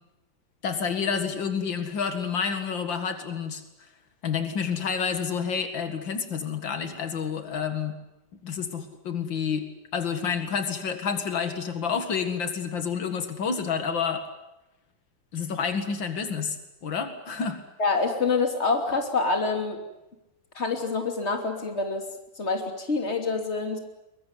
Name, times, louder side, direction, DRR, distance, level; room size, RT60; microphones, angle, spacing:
voice 1, 0.6-3.6 4.2-8.0 8.4-14.2 15.3-16.6 16.8-17.6, left 6 dB, 85° left, 8 dB, 2.6 m, -29 dB
voice 2, 17.8-19.8 20.5-22.0 22.4-23.8, left 4 dB, 35° left, 4 dB, 3.3 m, -26 dB
23.0 x 21.0 x 9.8 m, 0.93 s
omnidirectional pair, 2.0 m